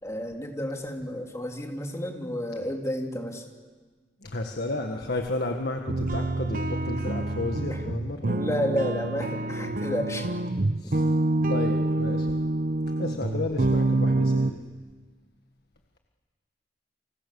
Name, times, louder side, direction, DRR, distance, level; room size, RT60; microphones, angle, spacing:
voice 1, 0.0-3.4 7.7-7.8 8.3-10.3, equal, 15° left, 2 dB, 3.1 m, -31 dB
voice 2, 4.2-8.4 9.6-9.7 10.8-11.0 11.5-12.4 13.0-14.6, left 2 dB, 65° left, 3 dB, 1.7 m, -32 dB
sound 1, 5.9-14.5, right 2 dB, 55° right, 0.9 m, -26 dB
30.0 x 25.5 x 7.1 m, 1.4 s
head